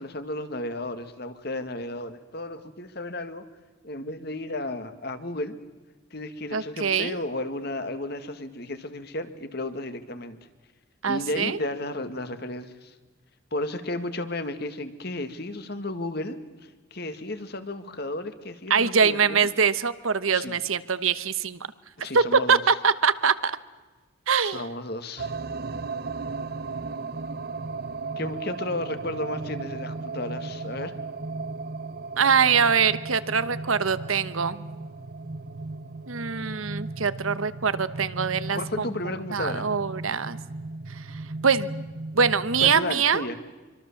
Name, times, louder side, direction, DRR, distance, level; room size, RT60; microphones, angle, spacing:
voice 1, 0.0-3.4 3.8-5.6 6.1-10.4 11.1-12.9 13.5-16.4 16.9-19.5 20.3-20.6 22.0-22.6 24.4-25.3 28.2-30.9 38.5-39.7 42.6-43.4, left 1 dB, 50° left, 9 dB, 1.9 m, -33 dB
voice 2, 6.5-7.2 11.0-11.6 18.7-21.7 22.1-23.5 24.3-24.6 32.2-34.6 36.1-38.9 39.3-40.4 40.9-41.7 42.1-43.2, right 6 dB, 90° right, 14 dB, 1.2 m, -23 dB
sound 1, 25.2-42.8, right 3 dB, 50° right, 0.8 m, -36 dB
25.5 x 24.5 x 7.3 m, 1.3 s
head